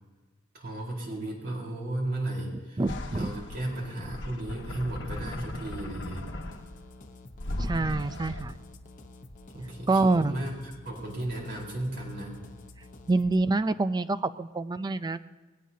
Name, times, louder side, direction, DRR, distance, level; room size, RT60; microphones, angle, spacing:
voice 1, 0.5-2.9 3.1-6.3 9.5-12.4, right 1 dB, 45° right, -2 dB, 4.1 m, -35 dB
voice 2, 2.8-3.3 7.6-8.5 9.9-10.3 13.1-15.3, right 3 dB, 20° right, 13 dB, 0.4 m, -26 dB
sound 1, 2.9-6.9 7.4-8.4, left 1 dB, 55° left, 1.2 m, -37 dB
sound 2, 6.0-13.4, left 2 dB, 35° left, 0.9 m, -49 dB
19.5 x 16.5 x 2.8 m, 1.2 s
head